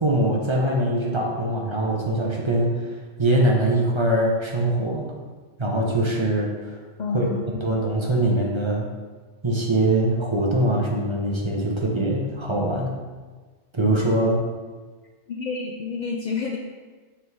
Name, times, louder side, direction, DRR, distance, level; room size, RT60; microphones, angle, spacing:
voice 1, 0.0-2.7 3.2-5.2 5.6-6.8 7.1-7.3 7.6-8.9 9.4-12.9 13.7-14.4, right 1 dB, 30° right, -1 dB, 0.7 m, -22 dB
voice 2, 7.0-7.7 15.3-16.6, left 4 dB, 80° left, 0 dB, 0.4 m, -29 dB
5.9 x 3.6 x 4.6 m, 1.4 s
omnidirectional pair, 1.3 m